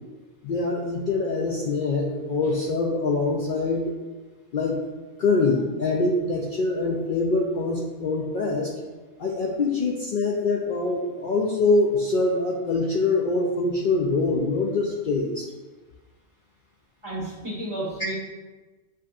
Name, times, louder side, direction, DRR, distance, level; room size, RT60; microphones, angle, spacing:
voice 1, 0.4-3.9 4.5-4.8 5.2-8.7 9.2-15.5, left 3 dB, 60° left, -2 dB, 0.6 m, -24 dB
voice 2, 17.0-18.1, right 1 dB, 25° right, -8 dB, 1.6 m, -32 dB
7.3 x 2.7 x 2.4 m, 1.3 s
omnidirectional pair, 1.2 m